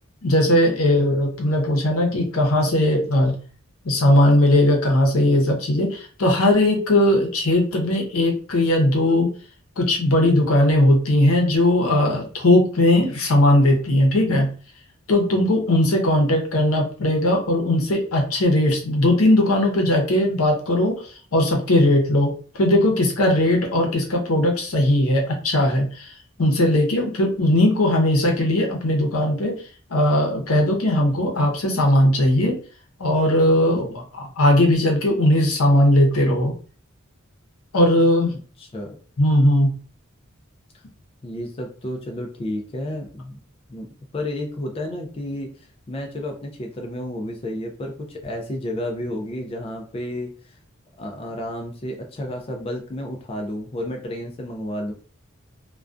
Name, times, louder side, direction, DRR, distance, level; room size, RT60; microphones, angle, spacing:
voice 1, 0.2-3.3 3.8-9.3 9.8-14.5 15.1-21.0 21.3-22.3 22.6-26.1 26.4-29.5 29.9-32.6 33.0-36.5 37.7-38.3 39.2-39.7, left 1 dB, 80° left, 1 dB, 0.7 m, -18 dB
voice 2, 38.6-39.0 41.2-43.4 43.7-43.9 44.1-50.6 51.0-54.9, left 1 dB, 25° left, 1 dB, 0.3 m, -31 dB
2.3 x 2.2 x 2.4 m, 0.41 s
head